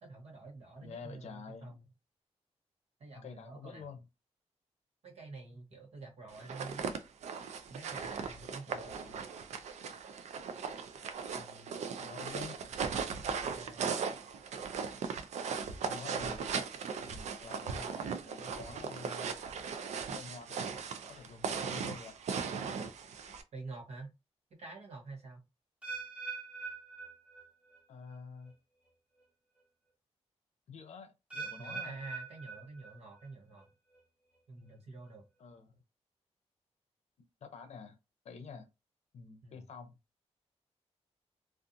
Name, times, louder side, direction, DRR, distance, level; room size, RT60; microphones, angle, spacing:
voice 1, 0.0-1.9 3.0-3.9 5.0-6.9 7.7-9.0 13.5-13.9 23.5-24.1 24.5-25.4 31.6-33.7 34.5-35.3 39.4-39.6, right 3 dB, 65° right, 1.0 m, -48 dB
voice 2, 0.8-1.8 3.2-4.0 8.7-9.2 11.4-12.6 15.8-16.5 17.0-19.3 20.1-20.6 21.1-22.2 27.9-28.5 30.7-32.0 35.4-35.8 37.4-38.0 38.2-38.7 39.1-40.0, left 5 dB, 75° left, 0.6 m, -49 dB
sound 1, 6.3-23.4, right 6 dB, 90° right, 0.4 m, -38 dB
sound 2, 25.8-27.8 28.1-28.5 29.2-29.3 31.3-33.3 33.6-34.0 34.7-34.8, right 4 dB, 10° right, 0.6 m, -43 dB
2.6 x 2.4 x 2.5 m
wide cardioid pair, 170°, 11 cm